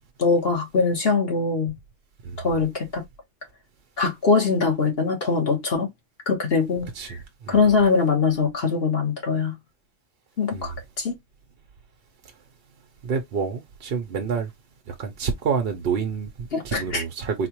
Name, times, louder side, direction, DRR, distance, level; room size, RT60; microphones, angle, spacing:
voice 1, 0.2-1.7 2.4-3.0 4.0-5.9 6.3-7.2 7.5-9.5 10.4-11.1 16.5-17.0, left 4 dB, 55° left, 1.5 m, -22 dB
voice 2, 13.0-14.5 14.9-17.5, right 6 dB, 55° right, 0.9 m, -28 dB
4.2 x 2.4 x 2.9 m
omnidirectional pair, 1.3 m